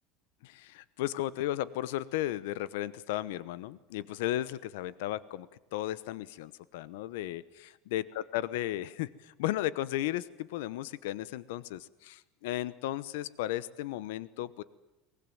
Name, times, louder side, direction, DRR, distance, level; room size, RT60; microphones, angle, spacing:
voice 1, 0.4-5.5 5.7-8.0 8.3-14.6, left 14 dB, 90° left, 18 dB, 1.0 m, -35 dB
23.5 x 20.5 x 9.2 m, 1.0 s
cardioid pair, 155°, 0 cm